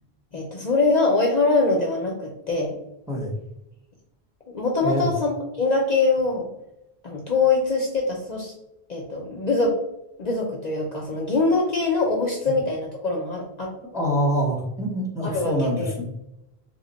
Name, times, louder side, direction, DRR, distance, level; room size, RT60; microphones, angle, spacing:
voice 1, 0.3-2.7 4.5-5.3 5.6-6.5 7.0-8.5 8.9-9.8 10.2-13.7 15.3-15.5 15.8-15.9, left 3 dB, 50° left, -1 dB, 0.6 m, -23 dB
voice 2, 13.9-16.0, equal, 5° right, -1 dB, 0.6 m, -25 dB
3.0 x 2.1 x 3.9 m, 0.88 s
omnidirectional pair, 1.1 m